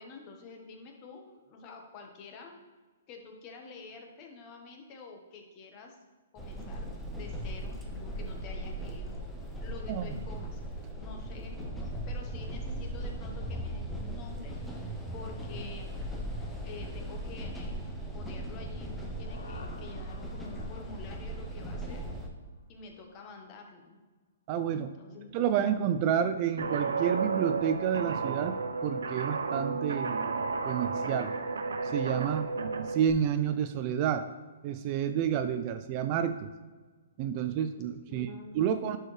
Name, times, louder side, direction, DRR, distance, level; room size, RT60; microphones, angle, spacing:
voice 1, 0.0-2.6 3.1-6.0 6.3-9.2 9.6-10.6 11.0-11.6 12.1-14.5 15.1-16.3 16.6-17.9 18.1-22.0 22.7-24.0 24.7-25.7 38.1-39.0, left 4 dB, 30° left, 2 dB, 1.2 m, -48 dB
sound 1, 6.4-22.3, right 1 dB, 5° left, 0.8 m, -38 dB
sound 2, 18.8-22.7, left 3 dB, 80° left, 1.1 m, -53 dB
voice 2, 24.5-24.9 25.3-30.1 30.6-31.3 31.8-32.5 32.9-34.3 34.6-36.5 37.2-38.3 38.5-39.0, right 9 dB, 35° right, 10 dB, 0.3 m, -29 dB
Guitar, 26.6-33.1, right 4 dB, 85° right, 0.5 m, -32 dB
11.0 x 4.6 x 3.3 m, 1.3 s
hypercardioid pair, 150°, 0 cm